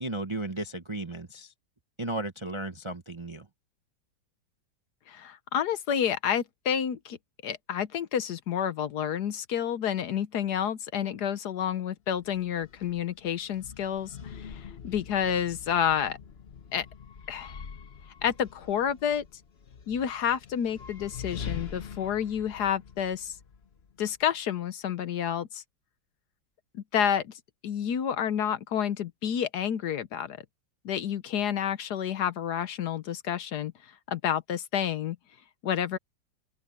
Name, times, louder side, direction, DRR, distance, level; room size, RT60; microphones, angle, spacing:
voice 1, 0.0-1.5 2.0-3.4, right 1 dB, 25° right, 0.6 m, -34 dB
voice 2, 5.1-7.2 7.4-16.2 16.7-16.9 17.3-17.5 18.2-19.2 19.9-23.3 24.0-25.6 26.7-27.3 27.6-30.4 30.8-33.7 34.1-35.2 35.6-36.0, left 9 dB, 65° left, 1.3 m, -29 dB
sound 1, 12.1-24.2, left 6 dB, 40° left, 1.0 m, -44 dB
open air
omnidirectional pair, 2.0 m